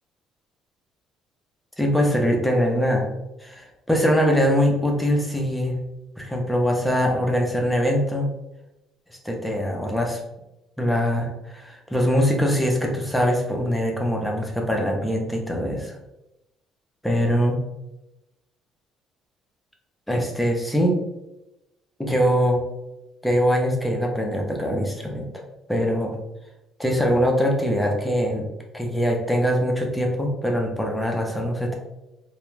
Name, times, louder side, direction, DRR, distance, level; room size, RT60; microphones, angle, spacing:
voice 1, 1.8-3.1 3.4-5.8 6.2-8.3 9.1-10.2 10.8-16.0 17.0-17.6 20.1-21.0 22.0-22.6 23.2-25.3 25.7-26.1 26.8-28.5 28.7-31.8, equal, 5° left, 0 dB, 0.5 m, -22 dB
2.4 x 2.2 x 3.1 m, 0.93 s
cardioid pair, 145°, 0 cm